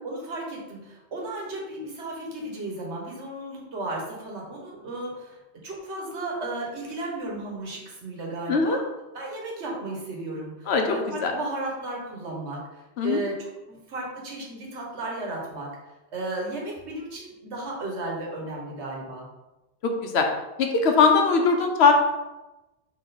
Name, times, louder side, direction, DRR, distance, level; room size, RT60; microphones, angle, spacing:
voice 1, 0.0-5.4 5.6-8.8 9.1-12.6 13.0-15.7 16.1-19.2, right 2 dB, 85° right, -2 dB, 1.4 m, -34 dB
voice 2, 20.6-21.9, left 5 dB, 75° left, 4 dB, 0.9 m, -20 dB
4.4 x 3.0 x 4.0 m, 1.0 s
omnidirectional pair, 1.1 m